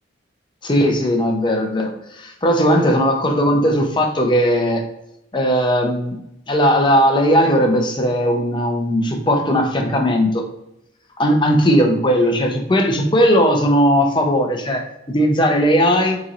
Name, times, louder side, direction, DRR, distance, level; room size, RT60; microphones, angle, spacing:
voice 1, 0.6-4.8 5.3-6.2 6.5-10.4 11.2-16.2, equal, 25° left, 2 dB, 0.7 m, -17 dB
6.8 x 3.1 x 2.5 m, 0.85 s
head